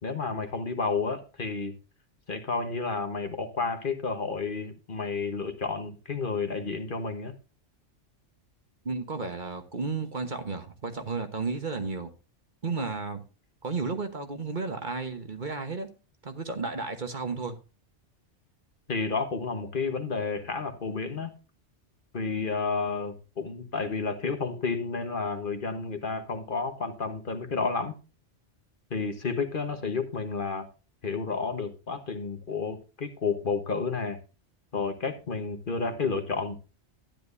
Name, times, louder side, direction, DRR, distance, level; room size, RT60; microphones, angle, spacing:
voice 1, 0.0-1.7 2.3-7.3 18.9-21.3 22.1-27.9 28.9-30.7 31.0-34.2 34.7-36.6, left 4 dB, 45° left, 1.4 m, -31 dB
voice 2, 8.8-12.1 12.6-13.2 13.6-15.9 16.2-17.6, right 4 dB, 45° right, 1.3 m, -33 dB
12.5 x 10.5 x 2.6 m
omnidirectional pair, 1.2 m